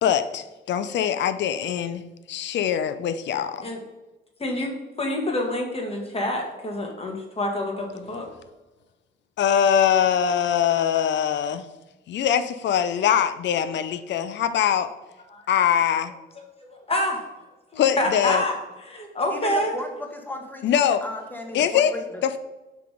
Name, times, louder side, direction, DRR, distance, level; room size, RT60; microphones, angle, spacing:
voice 1, 0.0-2.0 2.3-3.6 9.4-11.7 12.1-14.9 15.5-16.1 17.8-18.4 20.6-21.0 21.5-21.9 22.2-22.4, left 9 dB, 65° left, 11 dB, 0.5 m, -22 dB
voice 2, 4.4-4.7 5.0-8.3 15.3-15.4 16.7-17.2 17.7-18.6 18.8-19.7, left 1 dB, 30° left, 1 dB, 1.5 m, -27 dB
voice 3, 19.3-22.2, left 1 dB, 10° left, 3 dB, 1.1 m, -35 dB
5.8 x 3.6 x 4.9 m, 1.1 s
cardioid pair, 90°, 20 cm